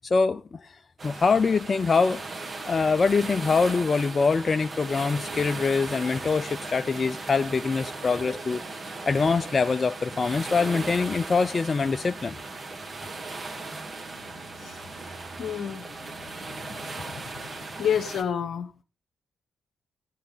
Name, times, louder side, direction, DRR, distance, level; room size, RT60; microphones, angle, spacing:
voice 1, 0.0-2.2 2.7-8.6 9.1-12.4, left 4 dB, 45° left, 0.5 m, -24 dB
sound 1, 1.0-18.2, right 3 dB, 40° right, 2.7 m, -37 dB
voice 2, 15.4-15.8 17.8-18.7, left 8 dB, 65° left, 1.1 m, -28 dB
16.5 x 8.5 x 4.0 m
hypercardioid pair, 45°, 0 cm